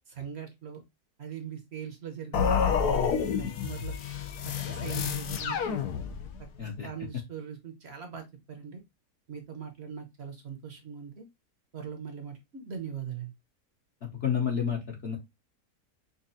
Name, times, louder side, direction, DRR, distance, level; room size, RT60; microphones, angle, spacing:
voice 1, 0.1-0.8 1.2-3.9 4.4-5.8 6.6-8.8 9.3-11.3 11.7-13.3, right 7 dB, 50° right, 5 dB, 0.9 m, -41 dB
sound 1, 2.3-6.4, left 7 dB, 80° left, 1.2 m, -29 dB
voice 2, 14.0-15.2, left 7 dB, 50° left, 0 dB, 0.9 m, -30 dB
5.3 x 2.4 x 2.6 m, 0.20 s
omnidirectional pair, 1.6 m